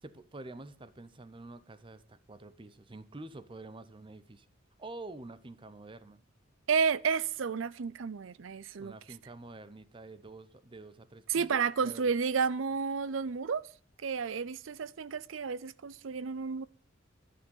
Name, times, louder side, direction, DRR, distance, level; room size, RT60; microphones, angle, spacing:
voice 1, 0.0-4.5 4.8-6.2 8.8-12.1, right 2 dB, 25° right, 0.7 m, -48 dB
voice 2, 6.7-8.9 11.3-13.7 14.0-16.7, right 6 dB, 75° right, 0.5 m, -31 dB
11.5 x 9.6 x 5.4 m
head